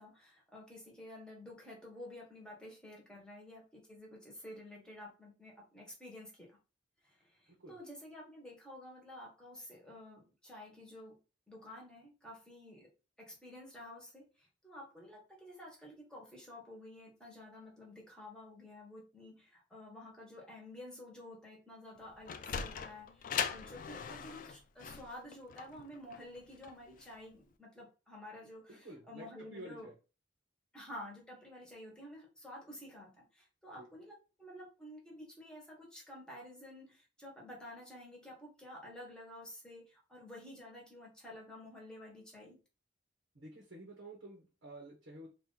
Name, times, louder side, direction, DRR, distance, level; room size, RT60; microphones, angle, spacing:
voice 1, 0.0-6.6 7.0-11.2 11.5-12.9 13.2-29.9 30.7-42.6, left 1 dB, 5° left, -2 dB, 1.1 m, -51 dB
Sliding door, 22.0-27.2, left 7 dB, 45° left, 0.3 m, -40 dB
voice 2, 28.7-29.9 33.8-33.9 43.3-45.3, right 1 dB, 75° right, -3 dB, 1.1 m, -50 dB
3.0 x 2.5 x 3.8 m, 0.32 s
head